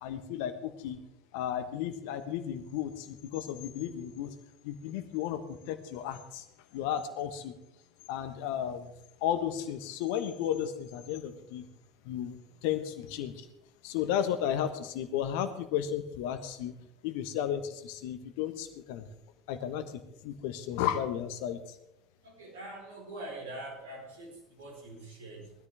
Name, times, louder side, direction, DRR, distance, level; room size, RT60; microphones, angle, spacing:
voice 1, 0.0-1.0 1.3-4.3 4.6-6.4 6.7-7.5 8.1-8.9 9.2-11.6 12.0-13.5 13.8-16.7 17.0-19.1 19.5-21.6, left 10 dB, 60° left, 10 dB, 1.3 m, -34 dB
voice 2, 22.2-25.5, right 1 dB, 70° right, -2 dB, 4.8 m, -44 dB
19.5 x 13.0 x 3.5 m, 0.83 s
figure-of-eight pair, 65°, 0 cm